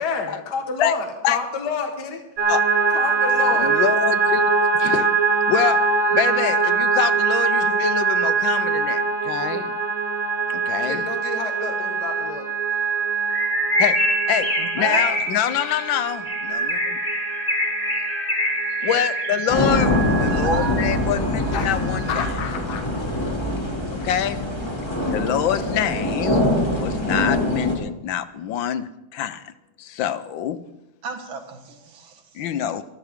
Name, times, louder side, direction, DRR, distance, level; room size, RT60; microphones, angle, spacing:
voice 1, 0.0-2.2 2.9-3.8 10.8-12.5 21.5-22.9 23.2-23.3 23.6-24.1, left 5 dB, 55° left, 4 dB, 2.1 m, -29 dB
sound 1, 2.4-21.1 21.5-22.3, right 5 dB, 40° right, 4.7 m, -23 dB
voice 2, 3.5-4.4 4.7-5.2 5.5-9.7 10.5-11.1 13.8-17.0 18.8-22.3 23.9-24.5 25.1-26.5 26.8-29.5 29.8-30.6 32.3-32.8, left 10 dB, 75° left, 14 dB, 1.5 m, -26 dB
Bird, 13.3-19.6, left 2 dB, 30° left, 1.7 m, -25 dB
voice 3, 14.6-15.2 20.3-20.8 31.0-32.2, right 4 dB, 75° right, 6 dB, 2.4 m, -31 dB
sound 2, 19.5-27.8, left 1 dB, 15° left, 2.7 m, -23 dB
24.5 x 13.5 x 3.7 m, 0.89 s
omnidirectional pair, 2.2 m